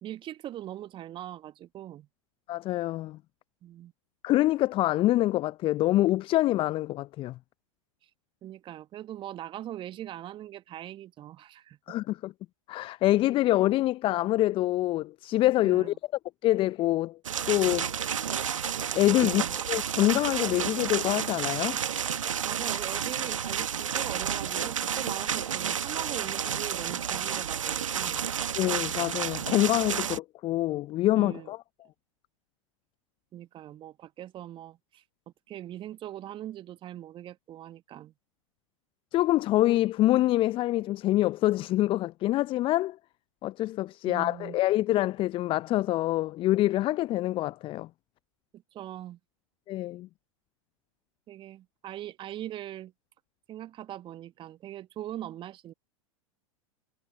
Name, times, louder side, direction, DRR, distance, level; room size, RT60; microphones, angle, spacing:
voice 1, 0.0-2.1 3.6-3.9 8.4-12.0 15.6-16.0 19.2-19.6 22.4-28.3 31.1-31.5 33.3-35.0 35.5-38.1 44.1-44.6 48.5-49.2 51.3-52.9 53.5-55.7, right 12 dB, 30° right, 1.7 m, -41 dB
voice 2, 2.5-3.2 4.2-7.4 11.9-12.3 12.7-15.9 16.4-17.2 17.5-17.9 19.0-21.8 28.6-31.6 39.1-43.0 43.4-47.9 49.7-50.1, left 16 dB, 30° left, 0.7 m, -25 dB
sound 1, 17.2-30.2, right 8 dB, 70° right, 1.7 m, -31 dB
figure-of-eight pair, 90°, 17 cm